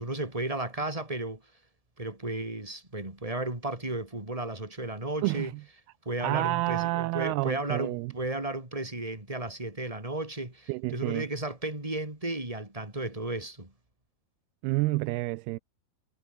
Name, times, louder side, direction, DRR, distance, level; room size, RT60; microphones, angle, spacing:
voice 1, 0.0-1.4 2.0-5.5 6.0-13.7, right 2 dB, 10° right, 4.7 m, -34 dB
voice 2, 5.2-5.6 6.2-8.1 10.7-11.3 14.6-15.6, right 20 dB, 80° right, 2.5 m, -29 dB
omnidirectional pair, 4.6 m